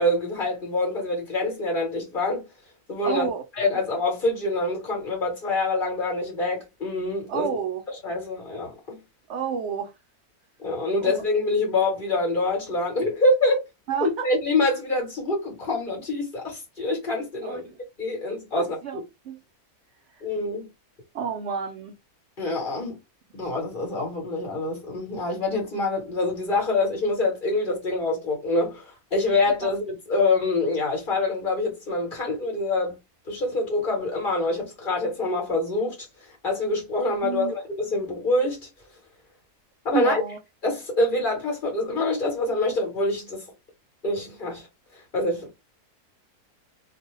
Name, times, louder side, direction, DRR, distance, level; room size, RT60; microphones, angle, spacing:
voice 1, 0.0-2.4 2.9-3.3 3.6-7.6 7.9-9.0 10.6-13.6 14.0-17.7 18.0-19.0 20.2-20.7 22.4-23.0 23.3-33.0 33.3-38.7 39.8-40.2 40.6-43.4 44.0-44.7 44.9-45.5, left 2 dB, 35° left, 1.1 m, -26 dB
voice 2, 3.0-3.4 7.3-7.8 9.3-9.9 11.0-11.1 13.9-14.3 17.4-17.6 18.6-19.0 19.2-19.4 21.1-21.9 29.6-29.7 37.2-37.5 39.9-40.4, right 7 dB, 70° right, 0.6 m, -29 dB
2.6 x 2.2 x 3.0 m
omnidirectional pair, 1.6 m